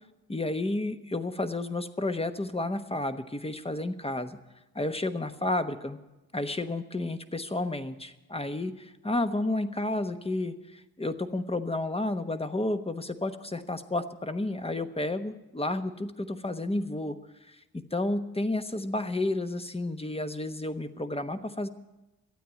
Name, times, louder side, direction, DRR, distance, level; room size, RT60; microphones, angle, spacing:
voice 1, 0.3-4.4 4.7-6.0 6.3-17.2 17.5-21.7, left 2 dB, 15° left, 9 dB, 1.1 m, -31 dB
13.0 x 8.9 x 9.3 m, 1.0 s
supercardioid pair, 55°, 40 cm